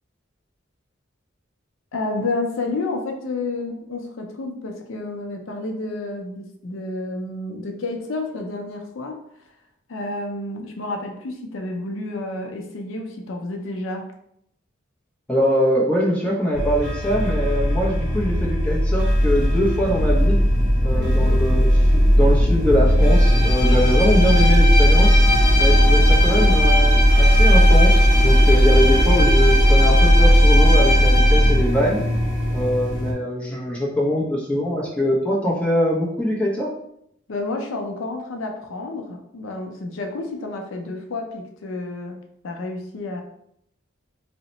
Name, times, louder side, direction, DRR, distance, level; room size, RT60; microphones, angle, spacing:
voice 1, 1.9-9.2 9.9-14.1 20.9-21.4 37.3-42.2 42.4-43.2, left 2 dB, 80° left, 3 dB, 0.5 m, -30 dB
voice 2, 15.3-20.4 20.8-21.7 21.9-25.2 25.5-32.0 32.5-36.7, equal, 5° left, -4 dB, 0.7 m, -22 dB
sound 1, 16.5-33.1, equal, 35° right, 1.4 m, -16 dB
Bowed string instrument, 23.0-31.6, left 1 dB, 45° left, 0.9 m, -23 dB
2.8 x 2.1 x 3.9 m, 0.73 s
head